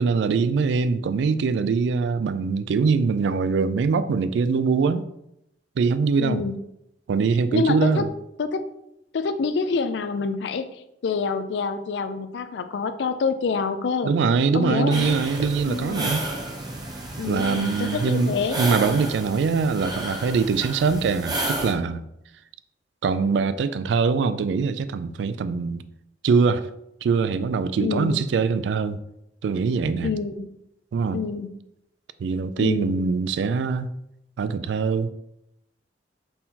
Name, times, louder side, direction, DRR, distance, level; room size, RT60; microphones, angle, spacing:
voice 1, 0.0-5.1 5.8-6.5 7.1-8.1 14.0-16.2 17.2-22.0 23.0-25.8 26.2-26.7 27.0-29.0 29.4-30.1 30.9-31.2 32.2-33.9 34.4-35.1, right 5 dB, 75° right, 0.3 m, -23 dB
voice 2, 6.2-6.6 7.5-8.0 8.4-8.6 9.1-10.7 11.0-14.1 14.5-15.2 15.6-16.1 17.2-18.6 27.8-28.2 30.0-30.6 31.1-31.5 32.6-32.9, left 5 dB, 75° left, 0.4 m, -27 dB
sound 1, 14.9-21.7, right 2 dB, 25° right, 0.6 m, -31 dB
4.3 x 2.8 x 3.7 m
head